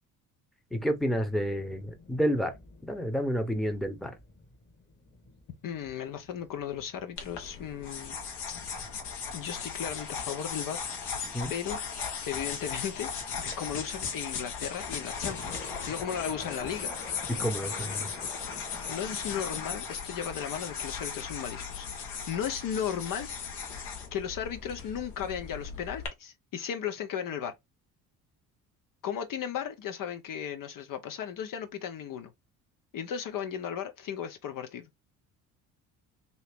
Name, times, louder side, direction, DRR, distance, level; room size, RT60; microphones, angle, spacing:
voice 1, 0.7-2.5 2.8-4.1 11.3-11.5 17.4-18.1, equal, ahead, 0.8 m, -30 dB
sound 1, 0.8-19.8, left 3 dB, 25° left, 1.2 m, -49 dB
voice 2, 5.6-8.2 9.3-10.8 11.5-11.8 12.3-13.1 13.4-16.9 18.9-23.3 24.1-27.5 29.0-32.3 32.9-34.9, left 8 dB, 50° left, 0.7 m, -35 dB
sound 2, 7.2-26.1, left 6 dB, 70° left, 1.2 m, -37 dB
2.8 x 2.7 x 3.4 m
hypercardioid pair, 60°, 43 cm